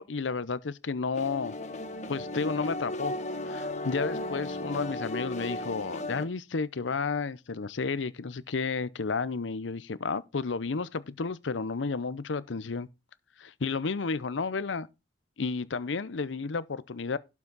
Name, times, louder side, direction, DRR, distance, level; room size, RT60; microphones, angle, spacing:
voice 1, 0.0-1.5 2.1-3.1 3.5-12.9 13.4-14.9 15.4-17.2, left 4 dB, 90° left, 0.7 m, -32 dB
sound 1, 1.1-6.2, left 2 dB, 40° left, 1.2 m, -35 dB
12.0 x 6.1 x 4.0 m
head